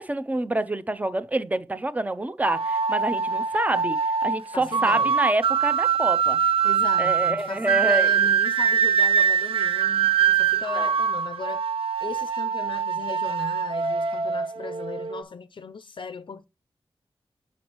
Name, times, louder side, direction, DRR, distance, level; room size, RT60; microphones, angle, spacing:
voice 1, 0.0-6.4 7.0-8.1 10.5-10.9, right 1 dB, 15° right, 0.5 m, -27 dB
sound 1, 2.4-15.2, right 7 dB, 75° right, 0.4 m, -23 dB
voice 2, 4.5-5.2 6.6-11.7 12.0-16.4, left 5 dB, 60° left, 0.4 m, -37 dB
7.0 x 6.0 x 3.0 m
wide cardioid pair, 100°, 10 cm